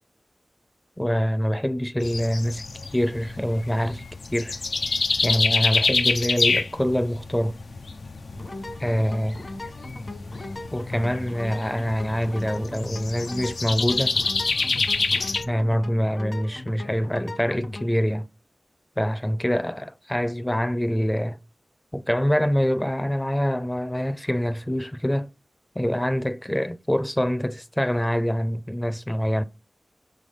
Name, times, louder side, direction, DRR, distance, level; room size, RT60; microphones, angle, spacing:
voice 1, 1.0-2.6 2.9-4.0 4.3-4.6 5.2-7.6 8.8-9.4 10.7-14.2 15.4-18.3 19.0-21.4 21.9-25.3 25.8-29.4, equal, 15° left, 0.5 m, -25 dB
sound 1, 2.0-15.4, left 3 dB, 80° left, 0.5 m, -27 dB
sound 2, 8.3-17.9, left 2 dB, 50° left, 1.5 m, -38 dB
6.1 x 3.4 x 5.5 m
cardioid pair, 45°, 0 cm